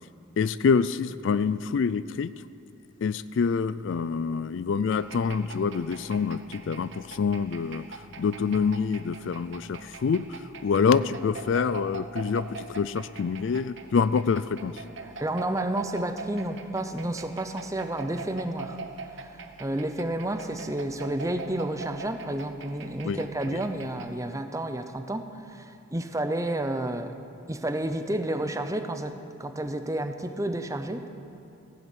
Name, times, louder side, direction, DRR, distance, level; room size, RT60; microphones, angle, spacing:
voice 1, 0.4-2.5 3.0-7.9 8.2-14.8 23.0-23.6, left 5 dB, 60° left, 16 dB, 0.3 m, -26 dB
sound 1, 4.9-24.2, right 4 dB, 55° right, 0.9 m, -43 dB
voice 2, 15.2-18.8 19.2-27.1 27.5-31.1, right 1 dB, 15° right, 8 dB, 0.7 m, -31 dB
15.5 x 10.5 x 8.5 m, 2.8 s
head